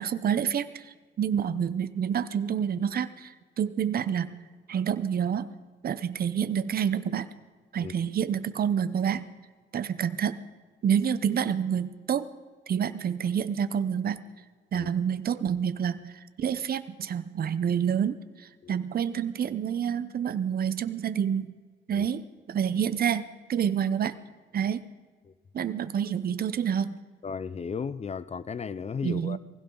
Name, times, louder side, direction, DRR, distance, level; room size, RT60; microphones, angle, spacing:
voice 1, 0.0-4.3 4.7-5.5 5.8-7.3 7.7-9.2 9.7-10.5 10.8-12.3 12.7-14.2 14.7-21.5 21.9-24.2 24.5-24.9 25.5-27.0 29.0-29.4, right 8 dB, 50° right, 0.8 m, -28 dB
voice 2, 27.2-29.4, left 6 dB, 35° left, 0.6 m, -35 dB
20.0 x 16.0 x 3.9 m
cardioid pair, 90°, 20 cm